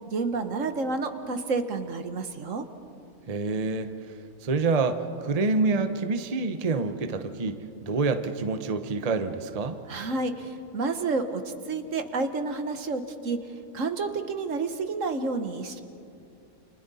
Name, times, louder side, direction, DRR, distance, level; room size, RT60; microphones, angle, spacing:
voice 1, 0.1-2.6 9.9-11.4 11.7-13.4 13.7-15.8, right 3 dB, 60° right, 8 dB, 1.5 m, -30 dB
voice 2, 3.3-3.9 4.4-7.6 7.9-9.8, right 3 dB, 30° right, 8 dB, 0.9 m, -27 dB
29.5 x 27.5 x 4.2 m, 2.5 s
omnidirectional pair, 1.5 m